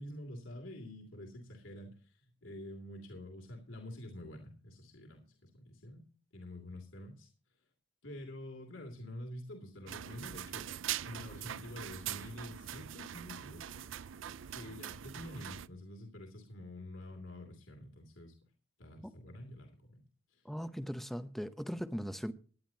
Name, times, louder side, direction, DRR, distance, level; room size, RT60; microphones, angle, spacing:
voice 1, 0.0-6.0 6.3-7.3 8.0-10.6 11.0-13.8 14.5-18.3 18.8-20.0 20.3-20.5, left 1 dB, 70° left, 2.8 m, -48 dB
sound 1, 9.9-15.7, right 10 dB, 70° right, 0.4 m, -42 dB
voice 2, 20.4-22.3, equal, ahead, 0.8 m, -39 dB
19.5 x 11.0 x 2.8 m
head